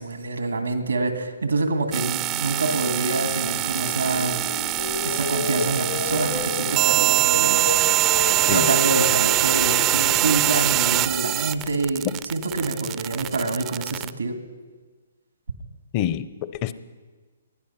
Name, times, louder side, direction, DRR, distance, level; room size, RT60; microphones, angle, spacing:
voice 1, 0.0-4.4 5.0-7.8 8.5-14.3, right 3 dB, 90° right, 6 dB, 2.0 m, -26 dB
sound 1, 1.9-14.1, right 14 dB, 25° right, 0.5 m, -23 dB
sound 2, 3.1-13.1, left 4 dB, 75° left, 5.0 m, -33 dB
voice 2, 15.9-16.7, left 11 dB, 35° left, 15 dB, 0.7 m, -27 dB
20.0 x 11.5 x 5.7 m, 1.4 s
hypercardioid pair, 135°, 0 cm